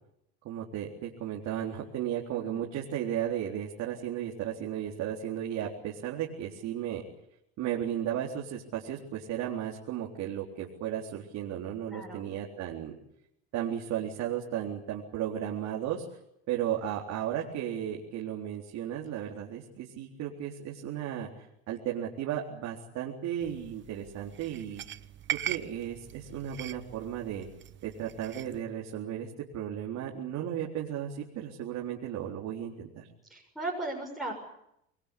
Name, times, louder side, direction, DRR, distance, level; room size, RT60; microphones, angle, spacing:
voice 1, 0.4-7.0 7.6-12.9 13.5-16.0 16.5-24.8 25.3-27.5 27.8-33.1, right 10 dB, 60° right, -2 dB, 4.0 m, -35 dB
voice 2, 2.3-2.7 11.9-12.2 33.3-34.3, right 2 dB, ahead, -3 dB, 6.9 m, -37 dB
sound 1, 23.4-28.6, right 11 dB, 35° right, 1.0 m, -40 dB
27.0 x 21.0 x 8.5 m, 0.80 s
supercardioid pair, 95°, 32 cm